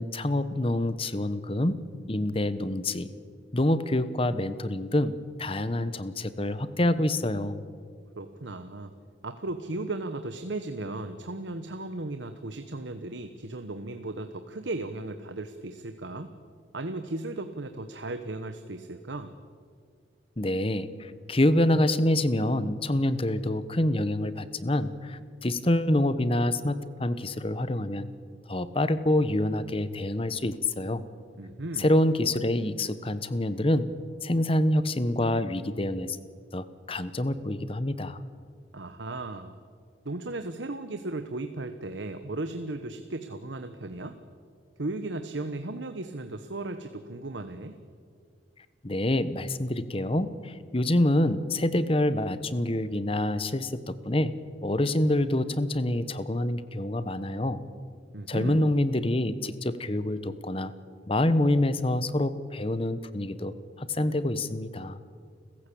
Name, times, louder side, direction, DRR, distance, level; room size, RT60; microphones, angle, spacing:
voice 1, 0.0-1.8 2.1-3.1 3.5-5.1 5.4-7.6 20.4-28.1 28.5-31.0 31.8-33.9 34.2-36.2 36.5-38.2 48.8-54.3 54.6-57.6 58.3-60.7 61.1-65.0, left 1 dB, 30° left, 14 dB, 1.0 m, -26 dB
voice 2, 8.2-8.9 9.2-16.3 16.7-19.3 31.4-31.9 38.7-39.6 40.0-44.2 44.8-47.7 58.1-58.7, right 2 dB, 85° right, 8 dB, 1.2 m, -36 dB
29.5 x 15.0 x 8.6 m, 2.1 s
head